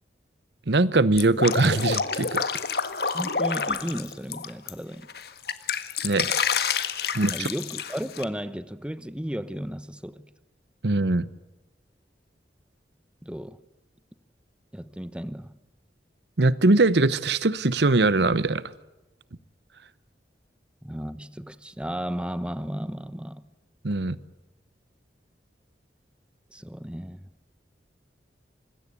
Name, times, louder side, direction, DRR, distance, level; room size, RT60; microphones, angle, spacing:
voice 1, 0.7-2.4 6.0-6.3 7.1-7.5 10.8-11.3 16.4-18.6 23.8-24.2, right 2 dB, 70° right, 0.9 m, -21 dB
Drip, 1.2-4.7 5.1-8.2, left 6 dB, 60° left, 1.6 m, -28 dB
voice 2, 3.1-5.1 7.3-10.2 13.2-13.6 14.7-15.5 20.8-23.4 26.5-27.3, equal, 5° right, 0.9 m, -34 dB
26.0 x 21.0 x 8.4 m
head